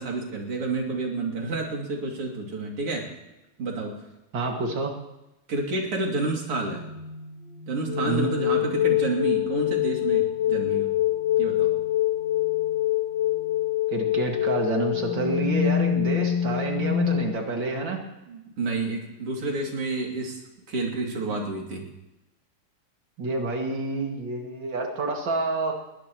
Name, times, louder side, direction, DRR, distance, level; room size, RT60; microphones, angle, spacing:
voice 1, 0.0-3.1 3.6-3.9 5.5-6.9 7.7-10.9 11.4-11.7 18.3-20.4 20.7-21.8, right 3 dB, 90° right, 0 dB, 3.8 m, -29 dB
voice 2, 4.3-4.9 8.1-8.3 13.9-18.0 23.2-25.7, right 3 dB, 55° right, 1 dB, 3.0 m, -28 dB
sound 1, 6.0-17.2, left 12 dB, 60° left, 2.4 m, -25 dB
21.0 x 18.0 x 3.1 m, 0.94 s
omnidirectional pair, 2.4 m